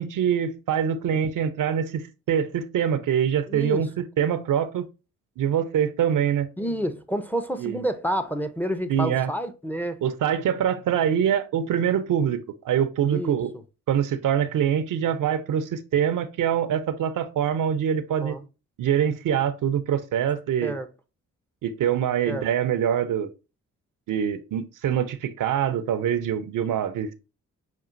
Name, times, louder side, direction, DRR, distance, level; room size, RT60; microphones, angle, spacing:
voice 1, 0.0-4.9 5.4-6.5 7.6-7.8 8.9-9.3 10.0-13.5 13.9-18.4 18.8-20.8 21.6-23.3 24.1-27.1, right 9 dB, 65° right, 0.6 m, -24 dB
voice 2, 3.5-3.9 6.6-10.0 13.1-13.4 18.2-18.4 20.6-20.9 22.3-22.4, equal, 5° left, 0.6 m, -29 dB
5.9 x 2.4 x 2.5 m
supercardioid pair, 55°, 34 cm